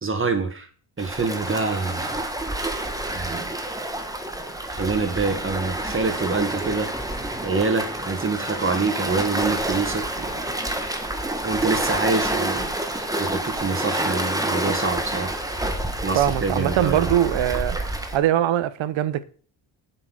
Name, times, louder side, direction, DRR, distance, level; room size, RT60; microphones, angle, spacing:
voice 1, 0.0-0.7 1.0-2.2 3.1-3.6 4.7-6.9 7.4-10.3 11.4-15.3 16.0-17.1, right 4 dB, 25° right, 1.9 m, -26 dB
Waves surf, 1.0-18.2, right 1 dB, 10° right, 1.4 m, -28 dB
voice 2, 16.1-17.8 18.1-19.2, right 12 dB, 85° right, 1.0 m, -22 dB
8.1 x 6.6 x 6.4 m
cardioid pair, 105°, 45 cm